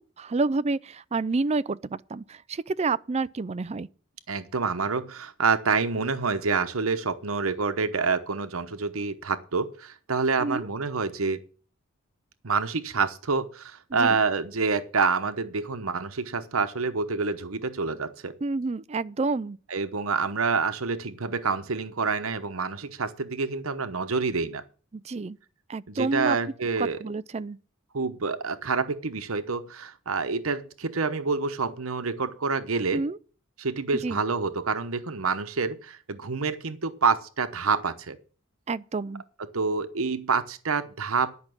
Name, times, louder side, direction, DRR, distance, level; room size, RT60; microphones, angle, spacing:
voice 1, 0.2-3.9 10.4-10.7 13.9-14.2 18.4-19.6 24.9-25.4 25.7-26.4 26.8-27.6 32.9-33.2 34.0-34.2 38.7-39.2, right 3 dB, 30° right, 0.4 m, -29 dB
voice 2, 4.3-11.4 12.4-18.3 19.7-24.6 25.9-27.0 27.9-33.1 33.6-38.2 39.5-41.3, right 4 dB, 85° right, 1.0 m, -27 dB
11.0 x 5.9 x 7.7 m
head